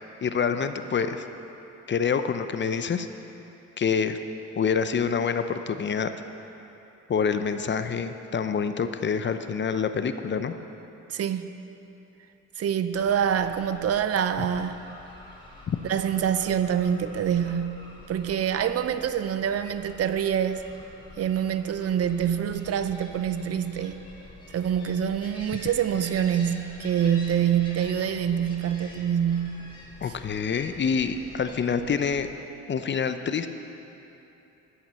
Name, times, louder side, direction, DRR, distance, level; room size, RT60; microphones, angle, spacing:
voice 1, 0.2-1.2 1.9-3.1 3.8-4.2 4.6-6.1 7.1-10.5 15.7-15.8 30.0-32.3 32.7-33.5, left 6 dB, 40° left, 9 dB, 0.6 m, -26 dB
voice 2, 11.1-11.5 12.6-14.8 15.9-20.6 21.2-24.0 24.5-29.7, right 9 dB, 55° right, 10 dB, 0.6 m, -26 dB
sound 1, 12.9-32.3, left 1 dB, 15° left, 2.5 m, -47 dB
14.0 x 5.9 x 6.8 m, 3.0 s
cardioid pair, 90°, 30 cm